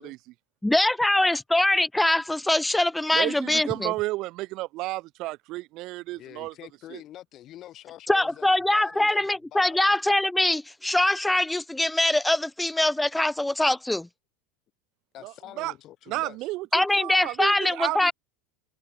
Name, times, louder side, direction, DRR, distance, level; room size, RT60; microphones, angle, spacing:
voice 1, 0.6-3.9 8.1-14.1 16.7-18.1, left 1 dB, 5° left, 0.7 m, -23 dB
voice 2, 3.1-6.5 6.9-7.0 15.2-15.7 16.1-18.1, right 19 dB, 55° right, 0.5 m, -32 dB
voice 3, 6.1-9.9 15.1-16.5, left 13 dB, 45° left, 2.2 m, -46 dB
supercardioid pair, 110°, 0 cm